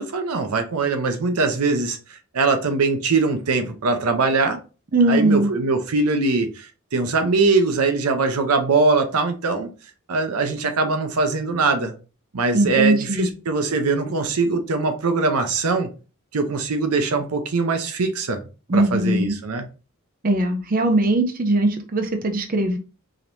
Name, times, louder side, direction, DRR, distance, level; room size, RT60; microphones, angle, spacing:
voice 1, 0.0-2.0 2.3-4.6 5.1-9.7 10.1-11.9 12.3-15.9 16.3-18.4 18.7-19.7, right 3 dB, 85° right, 7 dB, 0.7 m, -22 dB
voice 2, 4.9-5.5 12.5-13.3 18.7-19.4 20.2-22.8, right 1 dB, 40° right, 6 dB, 0.6 m, -20 dB
5.0 x 3.0 x 2.6 m, 0.34 s
head